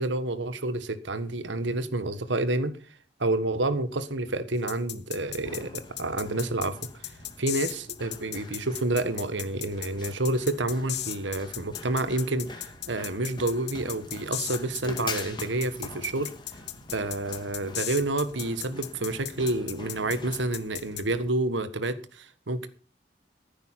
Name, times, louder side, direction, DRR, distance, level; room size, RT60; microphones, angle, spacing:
voice 1, 0.0-2.8 3.2-6.8 7.4-16.3 16.9-22.7, right 2 dB, 85° right, 1.5 m, -29 dB
sound 1, 4.7-21.0, left 14 dB, 60° left, 1.1 m, -36 dB
Run, 5.2-21.3, left 3 dB, 25° left, 2.0 m, -44 dB
15.0 x 9.1 x 5.9 m
head